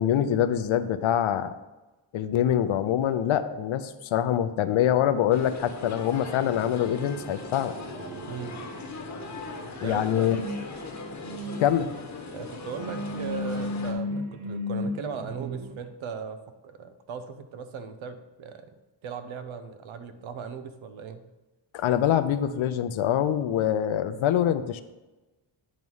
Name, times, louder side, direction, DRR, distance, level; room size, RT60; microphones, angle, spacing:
voice 1, 0.0-1.5 2.1-7.7 9.8-10.4 11.6-11.9 21.7-24.8, left 10 dB, 90° left, 11 dB, 0.6 m, -24 dB
sound 1, 5.3-13.9, left 3 dB, 35° left, 1.0 m, -40 dB
sound 2, 6.6-15.8, left 1 dB, 50° right, 0.7 m, -36 dB
voice 2, 9.8-10.3 12.3-16.4 16.6-18.7 19.0-21.2, right 6 dB, 90° right, 9 dB, 0.8 m, -38 dB
9.0 x 3.2 x 5.4 m, 1.1 s
wide cardioid pair, 145°, 46 cm